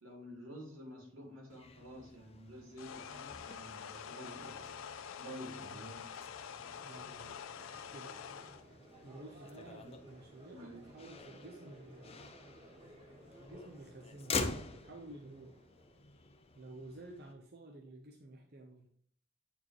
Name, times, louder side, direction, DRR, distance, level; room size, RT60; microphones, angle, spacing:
voice 1, 0.0-4.9 5.2-6.1 10.5-10.8, equal, 85° right, -1 dB, 2.3 m, -50 dB
Motor vehicle (road), 1.5-17.3, left 4 dB, 30° left, 0.5 m, -46 dB
sound 1, 2.8-8.6, left 7 dB, 75° left, 0.5 m, -47 dB
voice 2, 5.4-5.9 6.8-7.4 7.8-8.1 9.0-12.2 13.4-15.5 16.6-18.9, right 1 dB, 50° right, 1 dB, 0.8 m, -52 dB
Crowd, 6.3-16.4, right 1 dB, 25° right, 2.1 m, -58 dB
8.5 x 4.4 x 3.0 m, 0.63 s
head